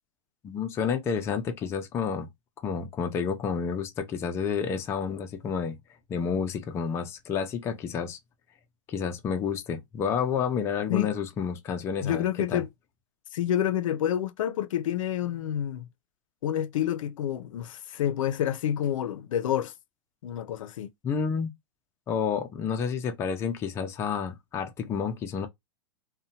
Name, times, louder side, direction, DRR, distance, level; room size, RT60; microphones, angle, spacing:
voice 1, 0.4-2.3 2.6-5.8 6.1-8.2 8.9-12.6 21.0-21.5 22.1-25.5, left 6 dB, 15° left, 0.3 m, -30 dB
voice 2, 12.0-12.7 13.3-15.9 16.4-19.7 20.2-20.9, left 10 dB, 85° left, 0.4 m, -28 dB
2.7 x 2.1 x 2.7 m
supercardioid pair, 145°, 16 cm